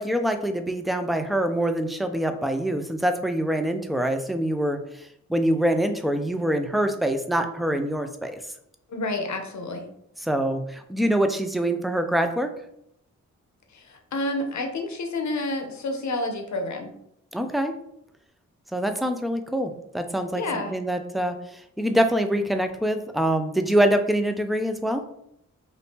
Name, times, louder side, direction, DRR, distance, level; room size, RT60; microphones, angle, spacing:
voice 1, 0.0-4.8 5.3-8.4 10.2-12.5 17.3-17.7 18.7-20.4 20.7-21.3 21.8-25.0, right 1 dB, ahead, 7 dB, 0.3 m, -24 dB
voice 2, 8.9-9.8 13.7-16.9 20.3-20.8, left 2 dB, 60° left, 4 dB, 0.7 m, -29 dB
2.7 x 2.6 x 3.4 m, 0.75 s
cardioid pair, 65°, 32 cm